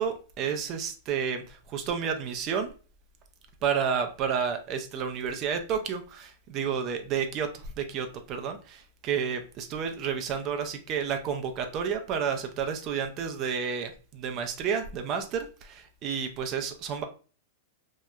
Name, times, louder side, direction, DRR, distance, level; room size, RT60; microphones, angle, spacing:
voice 1, 0.0-2.7 3.6-17.0, right 7 dB, 40° right, 6 dB, 0.3 m, -31 dB
2.7 x 2.0 x 2.2 m, 0.37 s
hypercardioid pair, 125°, 0 cm